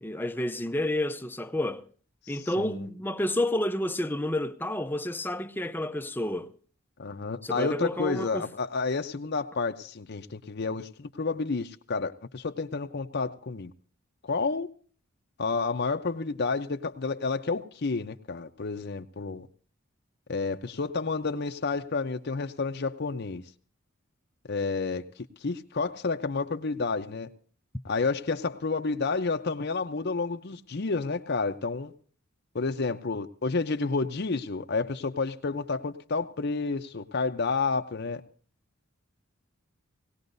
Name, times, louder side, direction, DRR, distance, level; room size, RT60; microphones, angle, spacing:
voice 1, 0.0-1.9 2.3-6.5 7.4-8.5, left 1 dB, 10° left, 0.5 m, -30 dB
voice 2, 2.3-2.9 7.0-13.7 14.2-14.7 15.4-19.5 20.3-23.4 24.5-27.3 27.8-31.9 32.5-38.2, left 4 dB, 55° left, 0.7 m, -30 dB
19.0 x 17.5 x 2.6 m
head